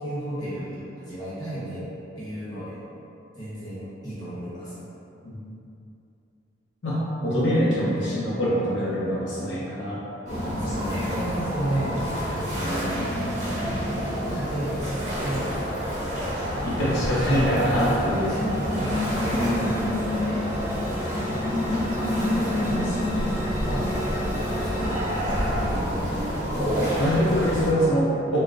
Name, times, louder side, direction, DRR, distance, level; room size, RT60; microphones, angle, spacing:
voice 1, 0.0-1.8 2.2-2.8 3.4-4.8 10.6-12.3 13.0-16.1 16.8-17.7 18.3-20.4 21.9-25.9, right 1 dB, 20° left, -12 dB, 0.9 m, -33 dB
voice 2, 6.8-10.0 10.3-10.6 10.9-11.2 12.5-13.3 16.6-18.4 19.3-19.9 22.0-22.1 26.6-28.4, equal, 65° left, -8 dB, 0.5 m, -25 dB
sound 1, 10.3-27.7, equal, 40° right, 1.0 m, -28 dB
sound 2, 16.3-25.2, equal, 10° right, 0.3 m, -35 dB
3.6 x 2.1 x 2.5 m, 2.8 s
head